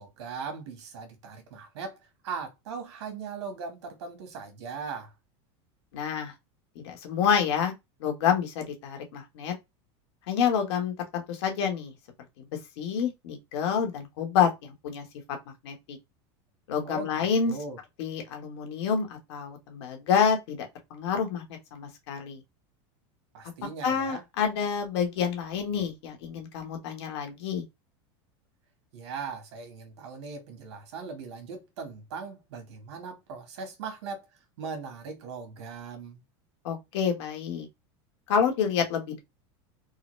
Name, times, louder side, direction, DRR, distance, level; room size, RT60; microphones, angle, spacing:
voice 1, 0.0-1.9 2.2-5.1 16.8-17.8 23.3-24.2 28.9-34.3 34.6-36.2, right 5 dB, 75° right, 1.5 m, -39 dB
voice 2, 5.9-6.3 6.7-7.7 8.0-9.5 10.3-11.9 12.4-12.5 12.8-15.0 15.6-16.0 16.7-17.6 18.0-21.4 21.7-22.4 23.8-27.6 36.6-37.7 38.3-39.2, left 7 dB, 75° left, 1.4 m, -28 dB
3.9 x 2.3 x 3.1 m
supercardioid pair, 140°, 14 cm